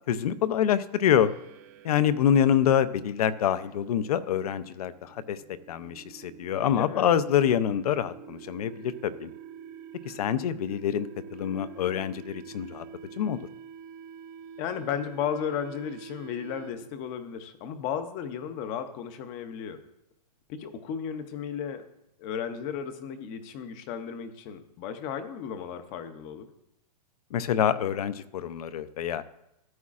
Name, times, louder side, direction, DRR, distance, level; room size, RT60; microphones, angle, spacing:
voice 1, 0.1-1.3 1.8-5.4 5.7-9.3 10.0-11.1 11.3-12.8 13.2-13.4 27.3-29.2, left 9 dB, 65° left, 15 dB, 0.6 m, -26 dB
sound 1, 1.1-17.0, right 7 dB, 30° right, 0.4 m, -47 dB
voice 2, 6.5-7.2 14.6-19.8 20.5-21.8 22.2-26.5, left 8 dB, 20° left, 10 dB, 0.6 m, -34 dB
14.0 x 8.4 x 2.5 m, 0.84 s
hypercardioid pair, 165°, 21 cm